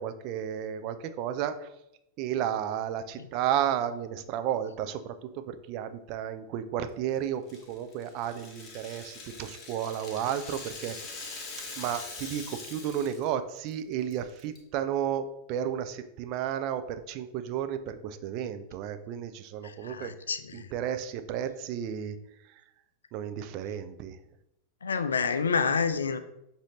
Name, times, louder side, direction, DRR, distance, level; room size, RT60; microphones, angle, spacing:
voice 1, 0.0-1.7 2.2-11.0 11.8-20.1 20.5-22.2 23.1-24.2, right 9 dB, 40° right, 0.3 m, -33 dB
Rattle (instrument), 7.5-13.3 13.6-13.7 14.1-14.6, left 3 dB, 30° left, 1.0 m, -43 dB
voice 2, 19.8-20.7 24.8-26.2, left 5 dB, 70° left, 0.3 m, -28 dB
6.2 x 2.6 x 3.0 m
figure-of-eight pair, 90°, 0 cm